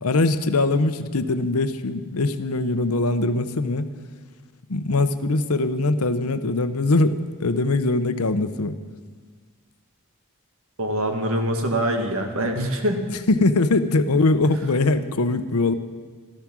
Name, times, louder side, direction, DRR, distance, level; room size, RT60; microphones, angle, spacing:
voice 1, 0.0-3.9 4.7-8.8 13.3-15.7, left 2 dB, 90° left, 11 dB, 0.9 m, -22 dB
voice 2, 10.8-13.0, right 1 dB, 75° right, 4 dB, 1.8 m, -24 dB
14.0 x 13.5 x 6.2 m, 1.5 s
head